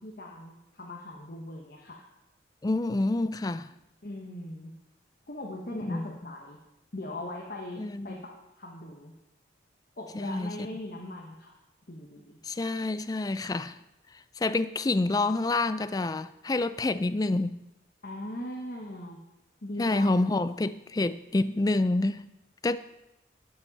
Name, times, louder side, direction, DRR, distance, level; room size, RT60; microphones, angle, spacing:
voice 1, 0.0-2.0 4.0-4.7 5.3-6.6 6.9-9.1 10.0-11.5 11.9-12.4 18.0-19.2 19.6-20.3, left 1 dB, 50° left, 1.2 m, -40 dB
voice 2, 2.6-3.7 5.9-6.1 7.8-8.2 10.2-10.5 12.5-13.7 14.4-17.6 19.8-22.3 22.6-22.8, left 2 dB, 20° left, 0.3 m, -27 dB
12.0 x 8.4 x 4.1 m
head